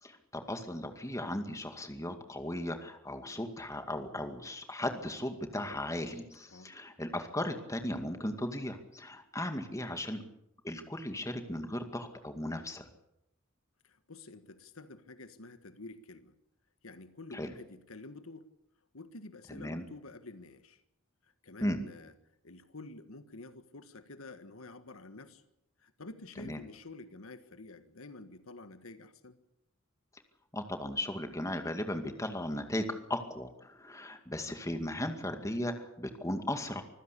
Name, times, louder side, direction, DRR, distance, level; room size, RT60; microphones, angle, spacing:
voice 1, 0.0-10.2 10.6-12.9 17.3-17.5 19.5-19.8 21.6-21.8 26.4-26.6 30.5-36.8, left 1 dB, 15° left, 6 dB, 2.2 m, -36 dB
voice 2, 13.8-16.3 16.8-18.5 18.9-20.8 21.2-22.1 22.4-25.4 25.8-29.4, left 2 dB, 80° left, 11 dB, 1.5 m, -49 dB
25.5 x 15.5 x 8.4 m, 0.81 s
head